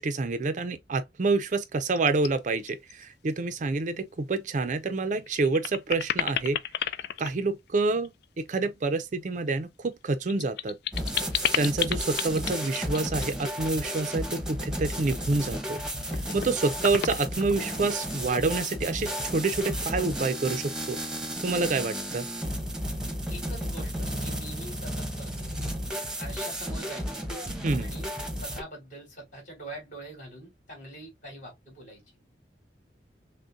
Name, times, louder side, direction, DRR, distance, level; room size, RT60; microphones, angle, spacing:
voice 1, 0.0-6.6 7.2-10.8 11.6-15.8 16.1-21.0 21.4-22.3 27.6-27.9, right 3 dB, 45° right, 0.5 m, -28 dB
sound 1, 1.9-2.3 2.7-3.0 3.4-3.5 4.7-4.8 5.2-8.2 9.8-13.3 15.2-15.8 16.1-16.5 16.8-17.9, left 10 dB, 65° left, 0.3 m, -32 dB
sound 2, 10.9-28.6, equal, 5° right, 0.9 m, -33 dB
voice 2, 23.3-25.5 26.2-27.2 27.8-28.1 28.4-32.0, right 1 dB, 45° left, 2.8 m, -44 dB
6.1 x 2.1 x 2.6 m
head